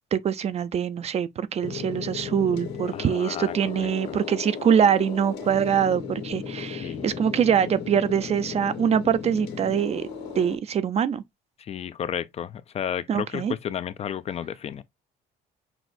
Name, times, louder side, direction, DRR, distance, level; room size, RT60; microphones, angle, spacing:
voice 1, 0.1-10.1 10.4-11.2 13.1-13.5, right 8 dB, 40° right, 0.4 m, -24 dB
sound 1, 1.6-10.6, left 6 dB, 85° left, 1.5 m, -35 dB
voice 2, 2.9-3.5 3.8-4.2 6.8-7.2 11.6-14.8, left 9 dB, 40° left, 0.4 m, -33 dB
6.0 x 2.5 x 2.5 m
cardioid pair, 110°, 17 cm